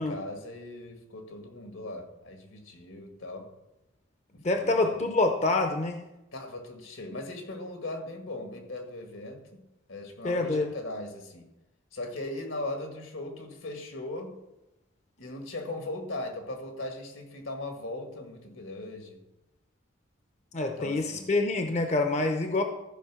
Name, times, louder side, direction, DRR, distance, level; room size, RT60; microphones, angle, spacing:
voice 1, 0.0-3.5 4.3-5.1 6.3-9.6 9.9-11.5 11.9-14.3 15.2-19.2 20.8-21.3, left 2 dB, 80° left, 4 dB, 1.9 m, -39 dB
voice 2, 4.4-6.0 10.2-10.7 20.5-22.6, left 2 dB, 35° left, 6 dB, 0.6 m, -26 dB
13.5 x 5.0 x 6.2 m, 0.94 s
head